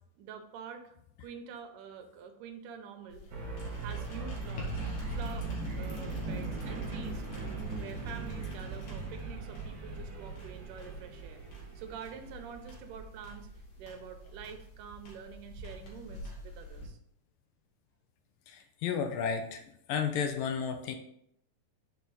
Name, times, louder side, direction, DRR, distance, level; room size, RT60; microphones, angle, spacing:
voice 1, 0.2-0.9 1.2-3.2 3.8-4.8 5.1-7.2 7.8-13.5 13.8-17.0, right 7 dB, 75° right, 6 dB, 2.2 m, -47 dB
sound 1, 3.1-16.9, equal, 70° left, 3.0 m, -46 dB
sound 2, 3.3-13.2, right 3 dB, 40° right, 2.3 m, -39 dB
voice 2, 18.5-19.6 19.9-21.0, left 7 dB, 85° left, 6 dB, 2.5 m, -32 dB
6.1 x 4.6 x 5.4 m, 0.74 s
omnidirectional pair, 3.9 m